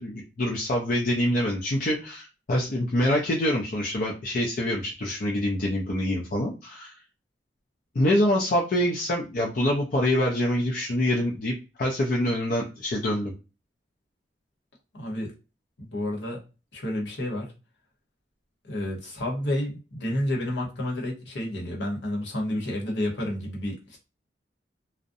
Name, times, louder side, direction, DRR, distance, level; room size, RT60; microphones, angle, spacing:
voice 1, 0.0-6.9 7.9-13.3, left 1 dB, 50° left, -2 dB, 0.5 m, -25 dB
voice 2, 14.9-15.3 15.8-16.4 16.7-17.5 18.7-24.0, left 1 dB, 75° left, -1 dB, 1.0 m, -30 dB
2.5 x 2.1 x 2.6 m, 0.30 s
head